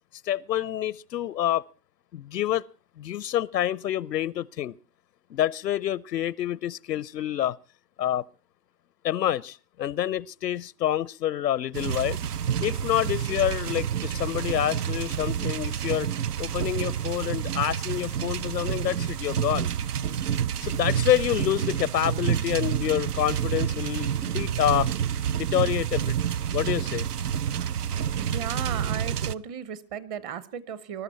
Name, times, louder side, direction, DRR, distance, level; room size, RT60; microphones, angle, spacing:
voice 1, 0.2-1.7 2.1-2.7 3.0-4.7 5.3-7.6 8.0-8.2 9.0-12.2 12.6-16.1 16.4-19.7 20.6-24.9 25.4-26.2 26.5-27.1, left 12 dB, 80° left, 0.7 m, -27 dB
sound 1, 11.7-29.3, right 9 dB, 70° right, 0.9 m, -28 dB
voice 2, 28.1-31.0, right 8 dB, 25° right, 0.9 m, -35 dB
20.5 x 12.5 x 4.2 m
hypercardioid pair, 135°, 49 cm